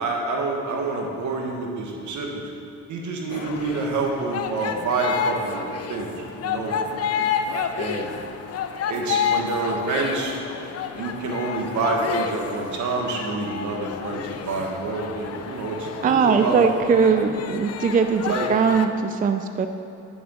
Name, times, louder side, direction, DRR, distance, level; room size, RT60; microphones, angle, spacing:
voice 1, 0.0-2.4 2.9-6.1 6.4-6.7 7.8-8.1 8.9-10.3 10.9-16.7 18.3-18.5, right 3 dB, 75° right, 1 dB, 1.5 m, -27 dB
sound 1, 3.3-18.9, left 7 dB, 55° left, 0.6 m, -30 dB
voice 2, 16.0-19.7, right 5 dB, 30° right, 7 dB, 0.4 m, -20 dB
10.5 x 7.1 x 3.8 m, 2.9 s
cardioid pair, 90°, 30 cm